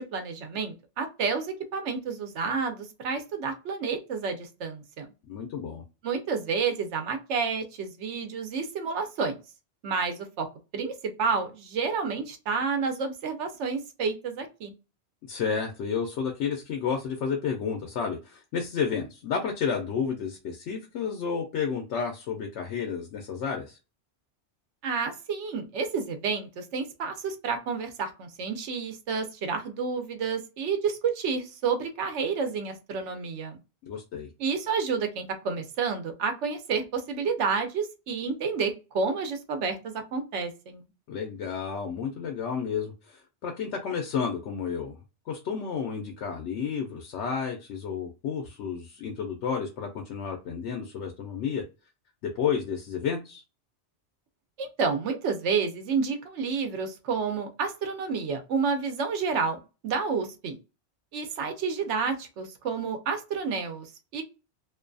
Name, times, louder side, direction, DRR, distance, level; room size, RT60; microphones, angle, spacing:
voice 1, 0.0-5.1 6.0-9.4 9.8-10.5 10.7-14.7 24.8-33.6 34.4-40.8 54.6-60.6 61.1-64.2, right 5 dB, 80° right, 1.0 m, -30 dB
voice 2, 5.3-5.8 15.3-23.8 33.9-34.3 41.1-45.0 45.3-51.6 52.3-53.4, left 6 dB, 80° left, 0.9 m, -31 dB
2.6 x 2.2 x 2.5 m
omnidirectional pair, 1.2 m